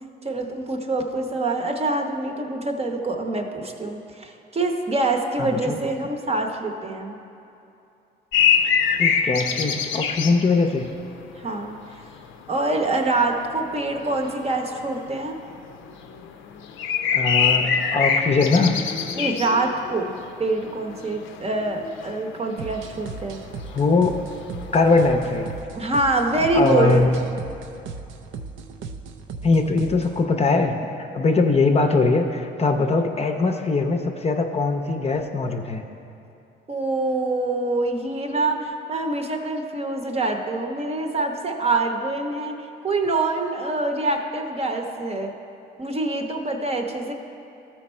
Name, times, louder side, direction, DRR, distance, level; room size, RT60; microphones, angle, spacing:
voice 1, 0.2-7.2 11.4-11.8 12.5-15.4 19.2-20.1 20.4-23.4 25.7-27.1 36.7-42.5 42.8-45.3 45.8-47.1, right 2 dB, 30° right, 3 dB, 0.8 m, -25 dB
voice 2, 5.4-5.8 9.0-10.9 17.1-18.8 23.7-24.3 24.7-25.5 26.5-27.3 29.4-35.8, left 3 dB, 30° left, 4 dB, 0.6 m, -21 dB
sound 1, 8.3-11.9 12.2-25.6, left 7 dB, 80° left, 0.5 m, -25 dB
sound 2, 22.6-30.2, right 4 dB, 80° right, 0.5 m, -37 dB
13.5 x 4.5 x 4.3 m, 2.7 s
cardioid pair, 90°, 20 cm